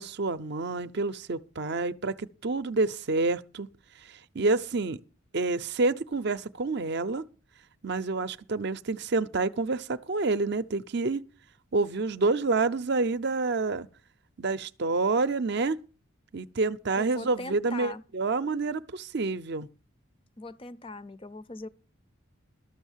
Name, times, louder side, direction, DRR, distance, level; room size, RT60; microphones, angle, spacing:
voice 1, 0.0-3.7 4.1-5.0 5.3-7.2 7.8-11.2 11.7-13.9 14.4-15.8 16.3-19.7, right 3 dB, 50° right, 0.6 m, -28 dB
voice 2, 16.9-18.0 20.4-21.7, left 2 dB, 25° left, 0.5 m, -40 dB
12.5 x 7.0 x 7.3 m
head